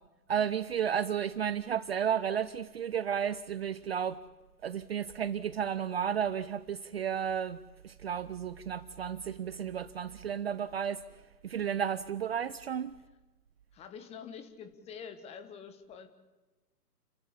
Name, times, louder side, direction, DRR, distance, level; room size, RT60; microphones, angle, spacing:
voice 1, 0.3-4.2 4.6-11.0 11.4-12.9, right 8 dB, 40° right, 0.7 m, -33 dB
voice 2, 13.7-16.1, left 7 dB, 15° left, 1.5 m, -46 dB
29.5 x 14.5 x 8.5 m
figure-of-eight pair, 130°, 48 cm